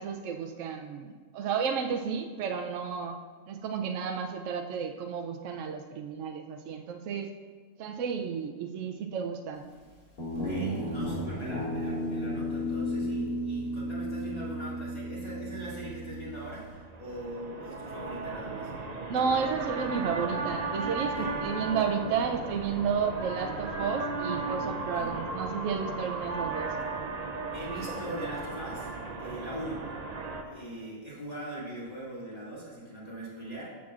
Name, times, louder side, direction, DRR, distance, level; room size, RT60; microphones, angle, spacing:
voice 1, 0.0-3.2 3.5-7.3 7.8-9.7 19.1-26.7, right 6 dB, 75° right, 5 dB, 0.9 m, -32 dB
Guitar, 10.2-16.7, equal, 85° left, 2.5 m, -33 dB
voice 2, 10.3-18.7 21.1-21.4 24.9-25.1 27.5-28.9 29.2-29.8 30.5-33.7, right 1 dB, 30° left, -10 dB, 2.3 m, -41 dB
sound 1, 16.8-30.4, right 3 dB, 40° right, 0.7 m, -35 dB
13.5 x 7.4 x 2.4 m, 1.5 s
omnidirectional pair, 1.3 m